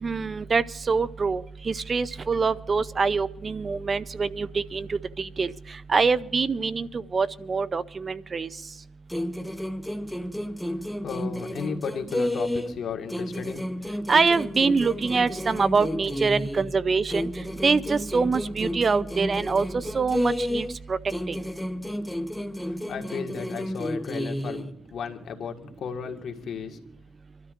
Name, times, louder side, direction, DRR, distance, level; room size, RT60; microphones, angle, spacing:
voice 1, 0.0-5.5 5.9-8.5 14.1-17.3 17.6-21.0 21.3-21.4, right 4 dB, 35° right, 16 dB, 0.5 m, -25 dB
sound 1, 9.1-12.8 13.1-16.7 17.1-20.8 21.1-24.7, left 1 dB, 5° left, 0.8 m, -31 dB
voice 2, 11.0-13.7 22.6-26.8, left 6 dB, 60° left, 4 dB, 1.8 m, -34 dB
26.5 x 13.0 x 2.5 m, 0.82 s
cardioid pair, 90°, 0 cm